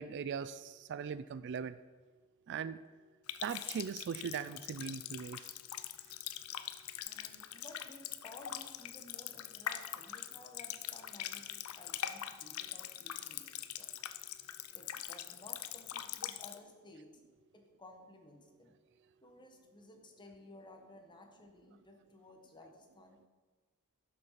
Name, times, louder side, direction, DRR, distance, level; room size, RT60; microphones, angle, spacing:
voice 1, 0.0-1.8 2.5-2.8 3.4-5.4, right 7 dB, 55° right, 15 dB, 0.3 m, -39 dB
Water tap faucet, 3.3-16.6, left 11 dB, 80° left, 0.6 m, -43 dB
sound 1, 3.5-7.9 8.6-9.4 12.2-12.5, left 8 dB, 50° left, 1.1 m, -61 dB
voice 2, 7.0-13.9 14.7-17.2 17.5-18.8 19.2-23.2, left 2 dB, 20° left, 3 dB, 1.3 m, -56 dB
11.5 x 6.7 x 5.8 m, 1.4 s
head